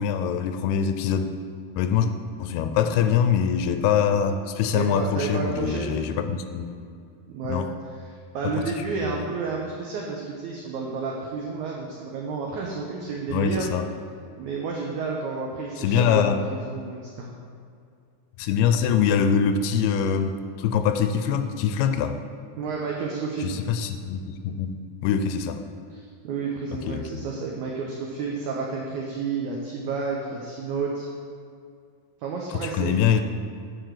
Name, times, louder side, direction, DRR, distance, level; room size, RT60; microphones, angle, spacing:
voice 1, 0.0-1.4 1.8-2.1 2.4-6.7 7.5-7.7 8.4-8.7 9.0-9.2 13.3-13.9 15.8-16.5 18.4-22.2 23.4-25.6 26.9-27.1 32.5-33.2, left 7 dB, 85° left, 8 dB, 2.6 m, -24 dB
voice 2, 4.7-5.9 7.3-7.6 8.3-13.7 14.4-17.3 22.6-23.6 25.9-31.1 32.2-33.0, right 4 dB, 90° right, -1 dB, 1.7 m, -31 dB
9.4 x 4.6 x 6.6 m, 2.3 s
omnidirectional pair, 4.5 m